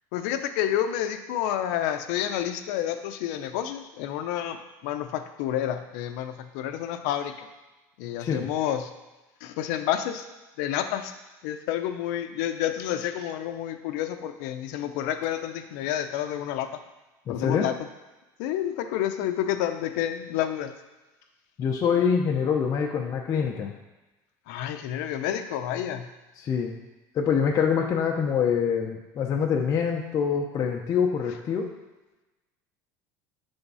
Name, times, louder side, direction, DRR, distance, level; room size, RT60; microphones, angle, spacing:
voice 1, 0.1-7.5 8.0-8.9 9.4-10.2 10.6-11.1 11.4-16.7 17.3-17.7 18.4-20.7 24.5-26.1, left 11 dB, 75° left, 8 dB, 0.6 m, -29 dB
voice 2, 17.3-17.7 21.6-23.7 26.4-26.7 27.1-31.7, left 7 dB, 35° left, 0 dB, 0.7 m, -25 dB
8.0 x 3.5 x 5.5 m, 1.1 s
supercardioid pair, 130°, 9 cm